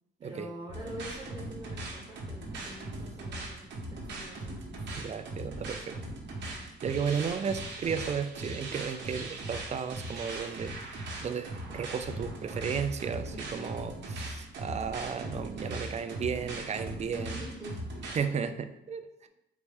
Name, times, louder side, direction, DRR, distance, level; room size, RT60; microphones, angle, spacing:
voice 1, 0.2-3.6 3.9-4.6 13.2-13.7 17.1-17.8, equal, 15° right, -3 dB, 1.2 m, -45 dB
sound 1, 0.7-18.2, right 2 dB, 65° right, 1.1 m, -39 dB
voice 2, 4.9-6.0 6.5-17.3 18.1-19.3, right 6 dB, 35° right, 9 dB, 0.4 m, -34 dB
4.0 x 3.1 x 3.6 m, 0.89 s
cardioid pair, 90°, 20 cm